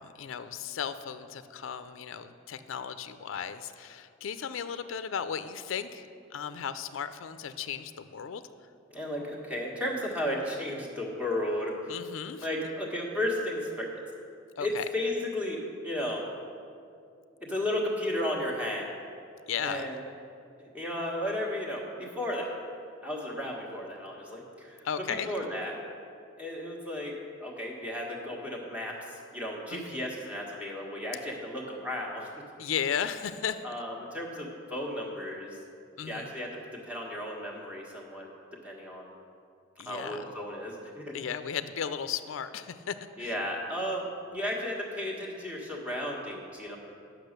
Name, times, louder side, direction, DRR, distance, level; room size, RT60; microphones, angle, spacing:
voice 1, 0.0-8.4 11.9-12.5 14.6-14.8 19.5-19.9 24.8-25.3 29.7-30.1 32.6-33.6 36.0-36.3 39.8-40.2 41.1-43.3, left 7 dB, 80° left, 11 dB, 0.4 m, -35 dB
voice 2, 8.9-11.9 12.4-14.0 14.6-16.3 17.4-19.0 19.6-20.0 20.6-22.6 23.0-25.8 26.4-32.3 33.6-35.6 36.1-38.3 38.6-39.1 39.8-41.2 43.2-46.8, left 1 dB, 5° right, -2 dB, 1.5 m, -34 dB
10.0 x 6.2 x 6.6 m, 2.4 s
head